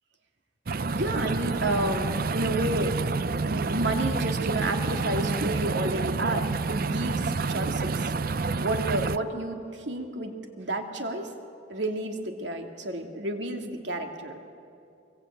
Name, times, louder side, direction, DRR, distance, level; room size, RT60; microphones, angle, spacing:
sound 1, 0.7-9.2, right 4 dB, 50° right, 0.6 m, -28 dB
voice 1, 0.9-2.9 3.4-8.1 8.6-11.3 11.7-14.4, right 1 dB, 70° right, 4 dB, 2.6 m, -31 dB
24.0 x 23.0 x 8.8 m, 2.5 s
head